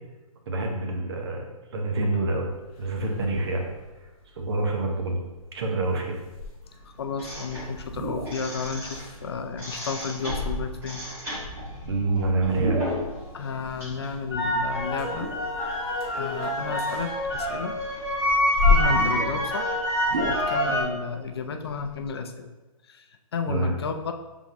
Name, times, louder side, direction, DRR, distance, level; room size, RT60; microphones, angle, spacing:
voice 1, 0.5-1.5 1.7-2.4 2.8-3.7 4.4-5.2 5.5-6.2 11.9-12.8 23.5-23.7, right 2 dB, 45° right, 1 dB, 0.9 m, -26 dB
sound 1, 2.5-20.0, left 4 dB, 25° left, 1.3 m, -34 dB
voice 2, 7.0-11.0 13.3-15.3 16.2-17.8 18.7-19.8 20.3-22.5 22.9-23.0 23.3-24.1, left 5 dB, 45° left, 7 dB, 0.4 m, -32 dB
sound 2, 7.2-9.2 9.5-13.2 13.5-20.8, equal, 10° right, 1.2 m, -28 dB
sound 3, 7.5-8.5 9.1-9.2 10.3-10.6 11.3-13.1 14.2-15.8 16.3-16.4 17.0-21.0 21.3-21.4 21.6-22.1, right 2 dB, 85° right, 1.2 m, -35 dB
5.7 x 3.6 x 2.6 m, 1.1 s
hypercardioid pair, 155°, 19 cm